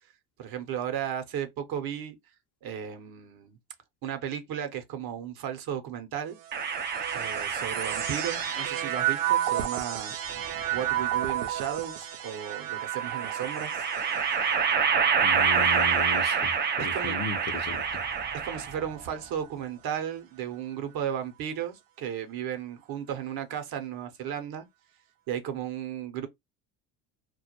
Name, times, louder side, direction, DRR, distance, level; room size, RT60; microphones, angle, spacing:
voice 1, 0.4-2.2 2.6-3.6 4.0-6.4 7.1-10.1 10.7-13.8 16.8-17.2 18.3-24.7 25.3-26.3, right 9 dB, 55° right, 0.8 m, -34 dB
sound 1, 6.4-17.9 18.6-19.4, right 11 dB, 85° right, 0.6 m, -33 dB
sound 2, 6.5-9.2 10.3-11.3 12.9-18.9, right 6 dB, 25° right, 0.4 m, -28 dB
voice 2, 15.2-16.5 16.8-17.8, left 3 dB, 35° left, 0.7 m, -35 dB
2.3 x 2.0 x 2.9 m
supercardioid pair, 80°, 45 cm